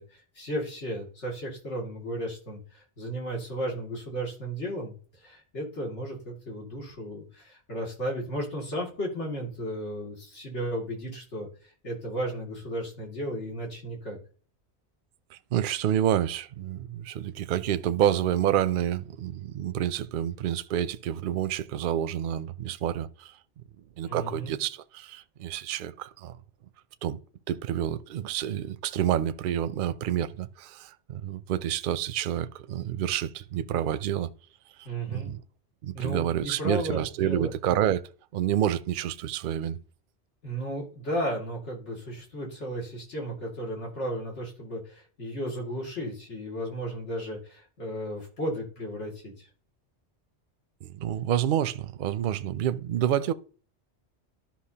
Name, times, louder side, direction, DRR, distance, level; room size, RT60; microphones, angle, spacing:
voice 1, 0.0-4.9 5.2-14.2 24.1-24.5 34.8-35.3 35.9-37.5 40.4-49.5, equal, 85° left, 2.7 m, -34 dB
voice 2, 15.3-23.4 24.0-26.4 27.0-27.2 27.5-34.3 34.8-35.4 35.8-38.0 38.3-39.8 50.8-53.3, right 10 dB, 60° right, 0.6 m, -28 dB
12.0 x 5.7 x 2.8 m
omnidirectional pair, 1.2 m